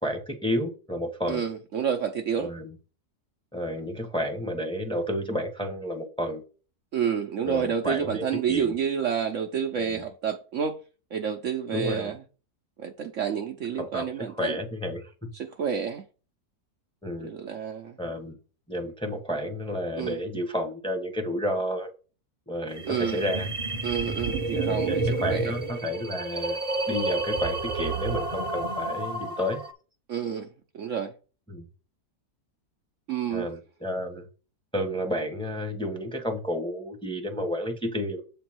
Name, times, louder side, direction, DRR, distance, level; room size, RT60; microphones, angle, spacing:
voice 1, 0.0-1.4 2.4-2.8 3.5-6.4 7.4-8.8 9.8-10.0 11.7-12.1 13.8-14.1 14.4-15.3 17.0-17.3 18.0-18.4 18.7-21.9 22.5-23.5 24.5-29.6 31.5-31.7 33.3-34.2 34.7-38.2, equal, 5° left, 1.0 m, -31 dB
voice 2, 1.3-2.5 6.9-10.8 11.1-12.2 12.8-14.6 15.3-16.0 17.2-18.0 20.0-20.2 22.8-23.2 23.8-25.5 30.1-30.5 30.7-31.1 33.1-33.5, right 7 dB, 60° right, 0.9 m, -29 dB
sound 1, 22.7-29.7, right 2 dB, 30° right, 0.9 m, -30 dB
8.1 x 3.4 x 6.2 m
omnidirectional pair, 1.7 m